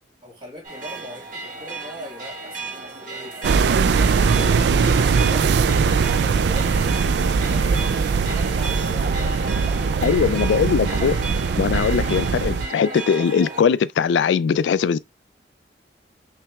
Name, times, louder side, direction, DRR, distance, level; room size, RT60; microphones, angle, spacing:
voice 1, 0.2-6.7 7.4-10.9, equal, 30° right, 2.6 m, -41 dB
sound 1, 0.6-13.6, right 3 dB, 45° right, 1.9 m, -34 dB
sound 2, 3.4-12.7, right 5 dB, 70° right, 0.3 m, -20 dB
voice 2, 10.0-11.2 11.6-15.0, left 6 dB, 85° left, 0.3 m, -20 dB
5.7 x 3.2 x 2.3 m
head